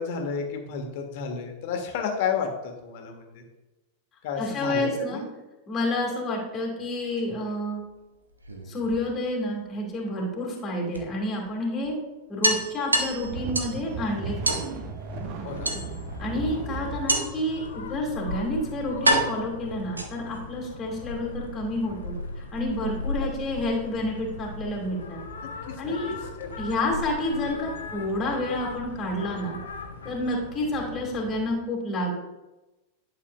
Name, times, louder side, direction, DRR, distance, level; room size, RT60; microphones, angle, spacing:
voice 1, 0.0-2.5 2.8-3.4 4.2-5.2 15.4-15.7 25.7-25.9 26.4-26.5, left 6 dB, 50° left, 3 dB, 1.4 m, -31 dB
voice 2, 4.4-5.2 5.7-7.8 8.7-12.0 12.3-14.8 16.2-22.1 22.5-25.2 25.8-26.2 26.6-29.6 30.0-32.1, left 1 dB, 20° left, -1 dB, 2.1 m, -29 dB
sound 1, 8.3-9.5 10.9-11.0 11.4-11.5 11.8-11.9 12.4-13.8 14.4-14.7 15.6-16.2 17.1-17.5 18.3-18.4 19.0-20.4, right 1 dB, 80° right, 0.9 m, -26 dB
sound 2, 12.9-17.2, right 4 dB, 45° right, 1.0 m, -35 dB
sound 3, 15.5-31.5, left 3 dB, 65° left, 0.9 m, -38 dB
11.0 x 6.5 x 2.3 m, 1.0 s
figure-of-eight pair, 90°, 0 cm